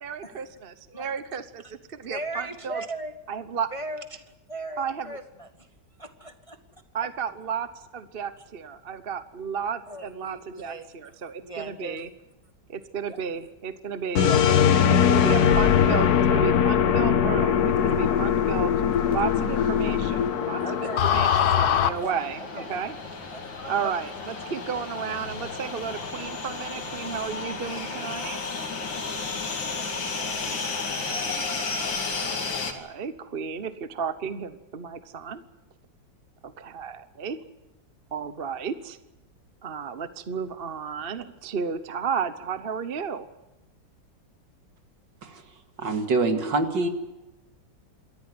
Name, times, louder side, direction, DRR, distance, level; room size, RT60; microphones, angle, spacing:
voice 1, 0.0-2.8 3.3-3.7 4.8-5.2 6.9-12.1 12.7-14.3 14.9-18.7 19.1-22.9 23.7-28.4 32.4-35.4 36.4-37.4 38.1-39.0 39.6-43.3, right 6 dB, 40° right, 12 dB, 1.0 m, -33 dB
voice 2, 2.0-3.1 3.5-4.2 4.5-5.5 6.0-6.6 9.9-10.9 11.4-12.0 13.0-13.2 14.2-14.4 20.6-21.6 21.8-22.7 23.3-23.7, right 2 dB, 20° left, 8 dB, 1.0 m, -38 dB
sound 1, 14.2-21.9, left 8 dB, 60° left, 1.4 m, -21 dB
sound 2, 18.9-32.7, left 4 dB, 80° left, 3.3 m, -33 dB
voice 3, 45.8-46.9, right 3 dB, 70° right, 7 dB, 2.7 m, -25 dB
27.0 x 14.0 x 9.6 m, 1.0 s
omnidirectional pair, 2.0 m